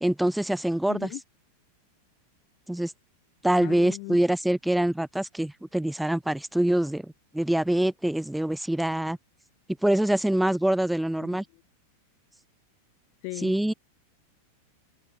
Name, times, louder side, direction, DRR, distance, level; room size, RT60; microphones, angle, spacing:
voice 1, 0.0-1.1 2.7-2.9 3.4-9.2 9.8-11.4 13.4-13.7, right 1 dB, 5° right, 0.6 m, -25 dB
voice 2, 0.9-1.2 3.6-4.2 11.2-11.4 13.2-13.5, left 40 dB or more, 45° left, 0.8 m, -37 dB
open air
figure-of-eight pair, 90°, 0 cm